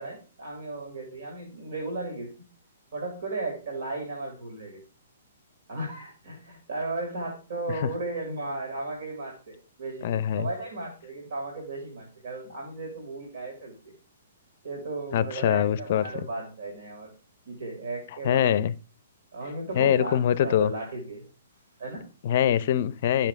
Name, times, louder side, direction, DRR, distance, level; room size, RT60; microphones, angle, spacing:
voice 1, 0.0-2.3 2.9-4.8 5.7-10.1 10.4-13.9 14.6-17.1 17.5-18.6 19.3-21.2 21.8-22.0, right 2 dB, 60° right, 2.7 m, -35 dB
voice 2, 10.0-10.5 15.1-16.1 18.2-18.7 19.7-20.7 22.2-23.3, left 10 dB, 50° left, 0.6 m, -23 dB
10.0 x 5.8 x 3.5 m
figure-of-eight pair, 120°, 0 cm